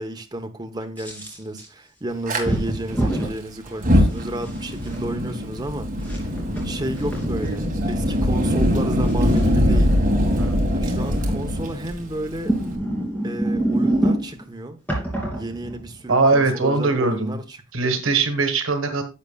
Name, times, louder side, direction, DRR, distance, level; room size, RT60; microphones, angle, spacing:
voice 1, 0.0-6.3 6.6-9.9 10.7-12.5 13.2-14.8 15.3-18.0, right 1 dB, 20° right, 1.0 m, -32 dB
sound 1, 1.0-1.7 2.4-3.3 4.0-5.0 6.0-7.5 8.6-9.6 11.1-11.5 12.3-14.4 14.9-16.0, right 1 dB, 5° left, 2.9 m, -26 dB
Fire, 2.3-2.4 3.7-12.8, equal, 40° right, 2.0 m, -22 dB
voice 2, 16.1-17.4 17.7-19.0, right 3 dB, 80° right, 1.6 m, -21 dB
10.5 x 8.0 x 2.4 m
head